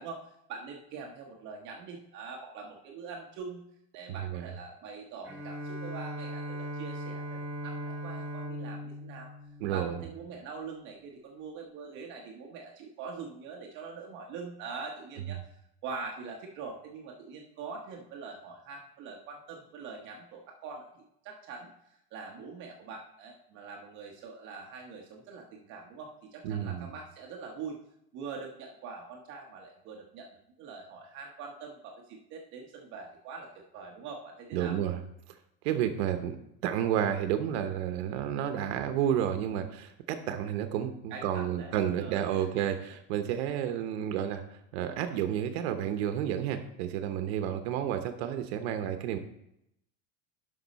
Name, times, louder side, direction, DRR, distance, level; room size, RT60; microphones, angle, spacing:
voice 1, 0.0-3.7 3.9-9.3 9.7-15.4 15.8-27.8 28.1-30.3 30.6-34.8 41.1-42.5, right 5 dB, 40° right, 0 dB, 1.0 m, -43 dB
Bowed string instrument, 5.2-10.5, equal, 10° right, 1.4 m, -39 dB
voice 2, 9.6-10.0 26.4-26.9 34.5-35.0 35.6-36.4 36.6-44.4 44.7-49.2, right 10 dB, 85° right, 7 dB, 0.9 m, -31 dB
11.5 x 5.5 x 4.0 m, 0.79 s
cardioid pair, 180°, 31 cm